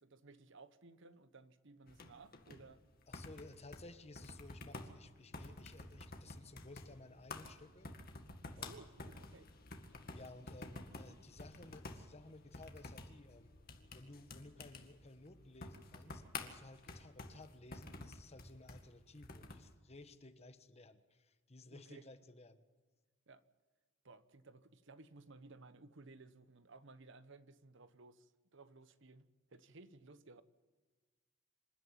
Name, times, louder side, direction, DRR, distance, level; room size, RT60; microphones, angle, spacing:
voice 1, 0.0-2.8 8.5-9.5 21.7-22.1 23.3-23.4 24.0-30.4, right 3 dB, 65° right, 13 dB, 1.1 m, -58 dB
sound 1, 1.9-19.7, left 3 dB, 50° left, 2.0 m, -51 dB
voice 2, 3.1-7.9 8.6-8.8 10.1-13.5 13.9-22.6, left 2 dB, 35° left, 10 dB, 1.3 m, -56 dB
26.5 x 12.5 x 9.2 m, 1.3 s
head